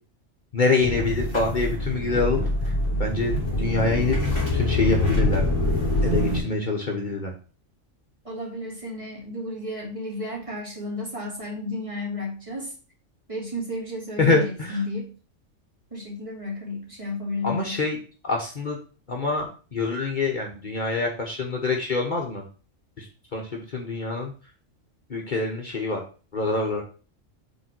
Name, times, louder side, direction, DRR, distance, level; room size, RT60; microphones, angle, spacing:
voice 1, 0.5-2.4 3.0-3.3 3.6-4.2 4.5-5.4 6.0-7.3 14.2-14.8 17.4-18.0 18.2-18.8 19.1-22.4 23.0-23.1 23.3-24.3 25.1-26.0 26.3-26.8, left 3 dB, 40° left, 0 dB, 1.1 m, -25 dB
sound 1, 0.8-6.4, left 1 dB, 20° left, 2.6 m, -24 dB
voice 2, 8.2-12.7 13.3-15.1 15.9-17.8, left 2 dB, 25° right, -3 dB, 2.2 m, -32 dB
5.4 x 3.9 x 5.9 m, 0.37 s
omnidirectional pair, 1.3 m